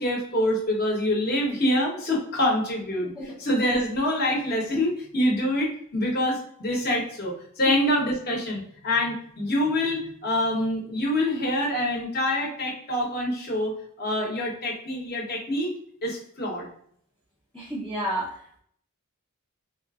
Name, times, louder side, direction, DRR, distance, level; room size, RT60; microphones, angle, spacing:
voice 1, 0.0-3.1 3.4-15.7 16.0-16.7, left 1 dB, 45° left, -1 dB, 1.0 m, -26 dB
voice 2, 3.0-3.3 17.5-18.6, right 1 dB, 5° left, -7 dB, 0.5 m, -32 dB
3.7 x 2.4 x 2.3 m, 0.64 s
head